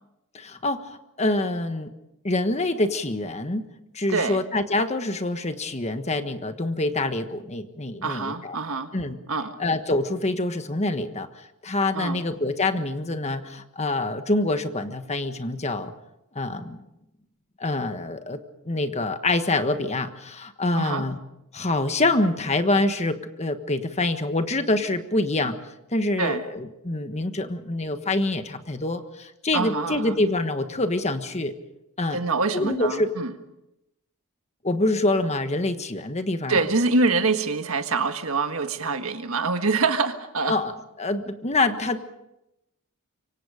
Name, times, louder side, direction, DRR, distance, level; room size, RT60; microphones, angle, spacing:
voice 1, 0.3-1.9 2.2-3.7 3.9-8.6 8.9-9.2 9.6-11.3 11.6-15.9 16.3-16.8 17.6-21.2 21.5-25.6 25.9-31.5 32.0-32.2 32.5-33.2 34.6-36.6 40.4-40.7 41.0-42.0, left 2 dB, 30° left, 8 dB, 1.4 m, -26 dB
voice 2, 4.1-4.4 8.0-8.9 9.3-9.6 11.9-12.2 20.7-21.0 26.2-26.5 29.5-30.2 32.1-33.3 36.5-40.6, right 3 dB, 65° right, 7 dB, 1.7 m, -25 dB
26.0 x 24.0 x 5.1 m, 0.87 s
head